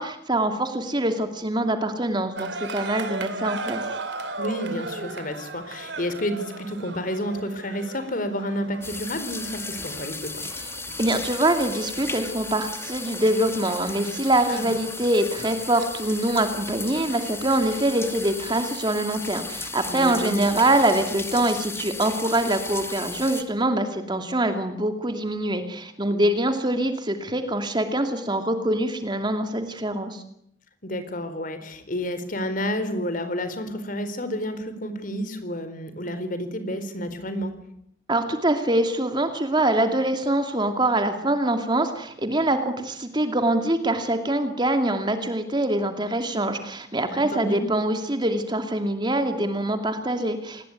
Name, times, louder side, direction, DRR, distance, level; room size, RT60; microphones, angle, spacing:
voice 1, 0.0-3.8 11.0-30.2 38.1-50.7, right 1 dB, 25° right, 7 dB, 2.6 m, -24 dB
sound 1, 2.4-19.2, right 2 dB, 70° right, 2.8 m, -38 dB
voice 2, 4.4-10.4 14.5-14.7 19.9-20.4 30.8-37.5 47.1-47.6, equal, 50° left, 11 dB, 4.3 m, -30 dB
sound 2, 8.8-23.4, left 3 dB, 15° left, 2.5 m, -35 dB
27.5 x 20.5 x 9.6 m, 0.73 s
head